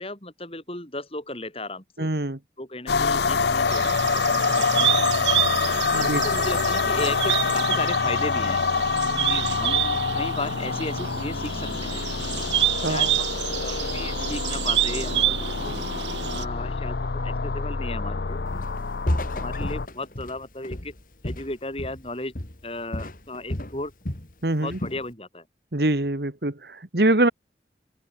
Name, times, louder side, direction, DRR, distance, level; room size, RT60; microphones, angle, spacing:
voice 1, 0.0-2.1 2.6-5.5 5.9-8.6 9.0-12.0 12.9-15.8 16.2-18.7 19.0-20.9 21.2-22.3 22.6-23.9 24.6-25.5, left 2 dB, 30° left, 7.1 m, -35 dB
voice 2, 2.0-2.4 5.9-6.2 12.8-13.1 24.4-24.8 25.7-27.3, right 2 dB, 60° right, 1.6 m, -24 dB
sound 1, 2.9-19.9, left 4 dB, 65° left, 0.7 m, -26 dB
sound 2, 3.7-16.4, right 12 dB, 80° right, 1.1 m, -28 dB
Walk footsteps, 18.5-18.8 19.1-22.1 22.3-22.7 22.9-24.3 24.7-25.0, left 1 dB, 50° left, 2.3 m, -32 dB
head